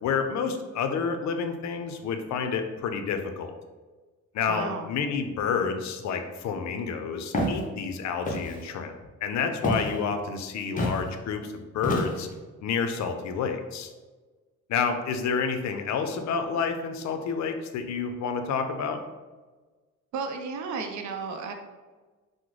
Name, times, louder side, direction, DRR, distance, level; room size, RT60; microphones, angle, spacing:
voice 1, 0.0-3.5 4.3-8.9 9.2-12.3 12.6-13.9 14.7-19.0, left 6 dB, 65° left, 6 dB, 0.5 m, -29 dB
voice 2, 4.5-4.9 20.1-21.5, right 5 dB, 70° right, 4 dB, 0.5 m, -33 dB
Walk footsteps, 7.3-7.6 8.2-8.6 9.6-10.0 10.8-11.0 11.8-12.3, left 1 dB, 25° left, 0.7 m, -28 dB
3.6 x 2.0 x 3.1 m, 1.3 s
cardioid pair, 90°, 30 cm